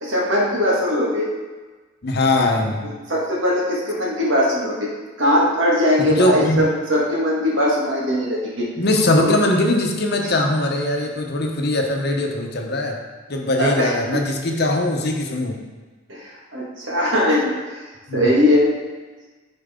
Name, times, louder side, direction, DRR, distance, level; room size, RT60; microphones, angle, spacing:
voice 1, 0.0-1.3 3.1-4.9 5.2-8.6 9.1-9.3 10.2-10.3 13.6-14.2 16.1-17.5 18.1-18.7, left 1 dB, 70° right, -5 dB, 2.0 m, -20 dB
voice 2, 2.0-2.8 6.1-6.6 8.8-13.0 13.3-15.6 18.1-18.3, left 1 dB, 55° left, 2 dB, 0.9 m, -21 dB
9.3 x 4.5 x 3.8 m, 1.3 s
head